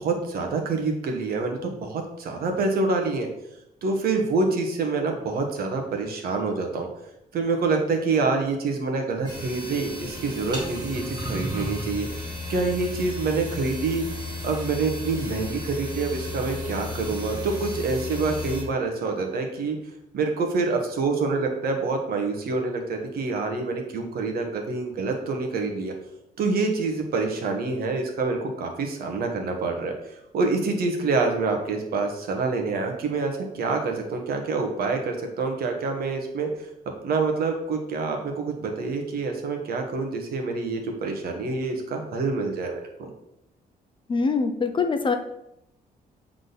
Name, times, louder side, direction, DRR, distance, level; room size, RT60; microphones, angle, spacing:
voice 1, 0.0-3.3 3.8-6.9 7.3-14.0 14.4-19.8 20.1-25.9 26.4-29.9 30.3-36.7 37.0-43.1, right 3 dB, 70° right, 3 dB, 1.2 m, -26 dB
sound 1, 9.2-18.6, left 2 dB, 25° right, 2.1 m, -34 dB
voice 2, 44.1-45.2, left 4 dB, 30° left, 7 dB, 0.6 m, -23 dB
8.0 x 3.8 x 4.0 m, 0.84 s
cardioid pair, 120°, 16 cm